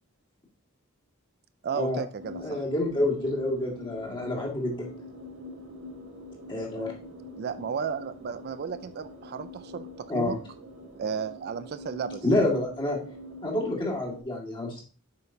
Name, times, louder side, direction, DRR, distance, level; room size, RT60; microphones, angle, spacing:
voice 1, 1.6-2.6 7.4-9.9 10.1-10.4 11.0-12.2, right 6 dB, 50° right, 12 dB, 0.4 m, -33 dB
sound 1, 2.2-14.2, left 1 dB, 75° right, 2.4 m, -44 dB
voice 2, 2.4-4.9 6.5-6.9 10.1-10.4 12.2-13.0 13.4-14.8, left 1 dB, 25° left, -3 dB, 1.9 m, -28 dB
7.7 x 5.8 x 2.8 m, 0.37 s
head